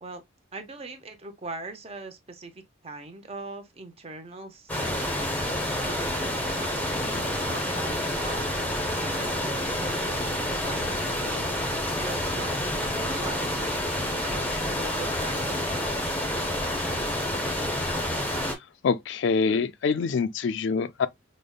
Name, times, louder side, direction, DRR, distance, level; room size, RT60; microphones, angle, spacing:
voice 1, 0.5-5.4 5.8-11.7 12.0-16.1, right 2 dB, 30° right, 0.6 m, -41 dB
sound 1, 4.7-18.6, left 1 dB, 10° left, 0.7 m, -28 dB
voice 2, 18.8-21.1, left 5 dB, 70° left, 0.4 m, -25 dB
5.1 x 2.1 x 2.2 m
head